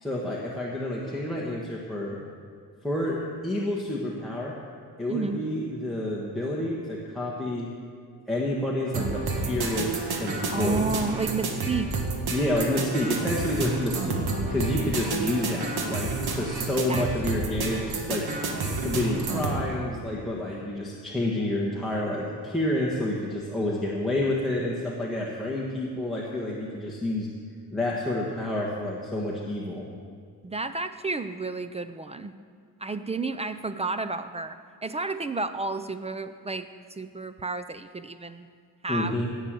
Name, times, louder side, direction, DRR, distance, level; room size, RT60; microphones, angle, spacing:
voice 1, 0.0-2.2 2.8-4.5 5.0-7.7 8.3-10.8 12.3-14.2 14.5-18.4 18.8-27.3 27.7-29.8 38.9-39.3, left 1 dB, ahead, -5 dB, 1.4 m, -29 dB
voice 2, 5.1-5.4 10.5-11.9 16.9-17.1 30.4-32.3 32.8-36.7 37.0-38.5 38.8-39.2, right 3 dB, 20° right, 10 dB, 0.3 m, -31 dB
sound 1, 8.9-19.6, right 3 dB, 65° right, 1.8 m, -30 dB
17.5 x 6.5 x 7.6 m, 2.1 s
cardioid pair, 145°, 40 cm